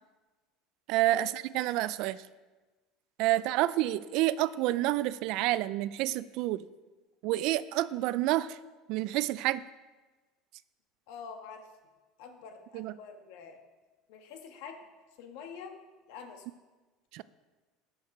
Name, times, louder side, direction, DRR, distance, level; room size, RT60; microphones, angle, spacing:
voice 1, 0.9-2.2 3.2-6.7 7.2-8.6 8.9-9.6 12.7-12.9 17.1-17.2, right 15 dB, 60° right, 17 dB, 0.3 m, -29 dB
voice 2, 11.1-11.6 12.2-13.6 14.1-14.8 15.2-15.7 16.1-16.4, left 6 dB, 75° left, 5 dB, 1.4 m, -46 dB
11.5 x 6.4 x 4.9 m, 1.2 s
supercardioid pair, 125°, 0 cm